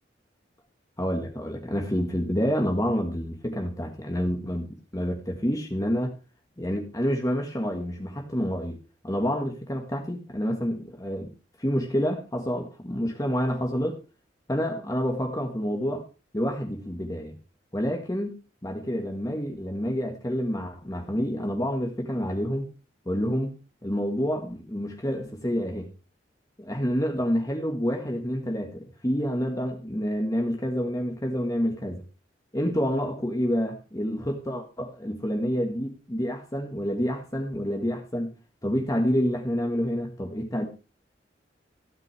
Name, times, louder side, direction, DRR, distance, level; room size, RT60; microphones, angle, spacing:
voice 1, 1.0-4.7 4.9-6.2 6.6-8.8 9.0-11.3 11.6-14.0 14.5-16.0 16.3-17.4 17.7-22.7 23.1-25.9 26.6-32.0 32.5-38.4 38.6-40.7, equal, 20° left, 2 dB, 1.8 m, -28 dB
16.0 x 9.2 x 3.4 m, 0.31 s
head